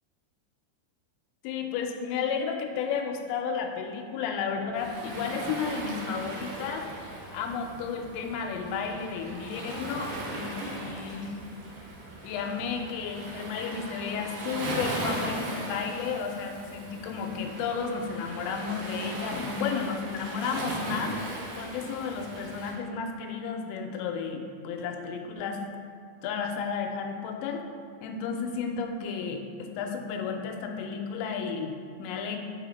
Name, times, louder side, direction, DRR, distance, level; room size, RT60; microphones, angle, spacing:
voice 1, 1.4-6.9 7.3-11.4 12.2-21.2 21.6-25.6 26.2-27.7 28.0-32.4, left 6 dB, 90° left, 3 dB, 3.2 m, -33 dB
Waves surf, 4.7-22.7, right 1 dB, 70° right, 2.2 m, -38 dB
6.9 x 4.9 x 4.0 m, 2.3 s
omnidirectional pair, 5.8 m